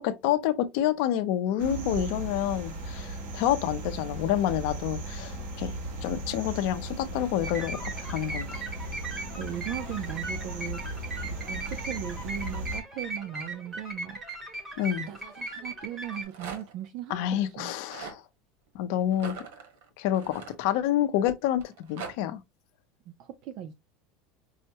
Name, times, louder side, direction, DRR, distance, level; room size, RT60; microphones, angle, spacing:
voice 1, 0.0-5.7 6.0-8.6 14.8-15.1 17.1-18.2 18.7-19.4 20.0-22.4, left 11 dB, 55° left, 0.6 m, -28 dB
voice 2, 1.6-2.2 9.3-10.8 11.2-14.2 14.5-14.8 15.1-17.7 23.1-23.7, right 11 dB, 40° right, 0.4 m, -38 dB
sound 1, 1.6-12.8, right 1 dB, 60° right, 1.6 m, -37 dB
sound 2, 7.4-16.2, right 2 dB, 15° right, 1.2 m, -38 dB
Rattle, 15.9-16.9 17.6-18.2 19.1-21.1 21.6-22.1, right 5 dB, 85° right, 1.2 m, -42 dB
5.5 x 2.1 x 2.8 m
supercardioid pair, 180°, 0 cm